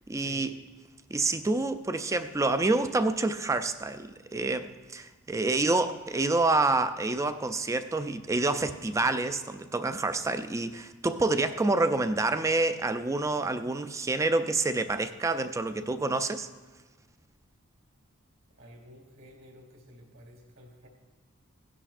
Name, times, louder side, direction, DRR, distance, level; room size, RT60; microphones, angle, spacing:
voice 1, 0.1-0.5 1.1-16.5, right 2 dB, 15° right, 10 dB, 0.3 m, -28 dB
voice 2, 18.6-20.9, equal, 65° right, 0 dB, 2.4 m, -52 dB
17.0 x 10.0 x 2.5 m, 1.3 s
head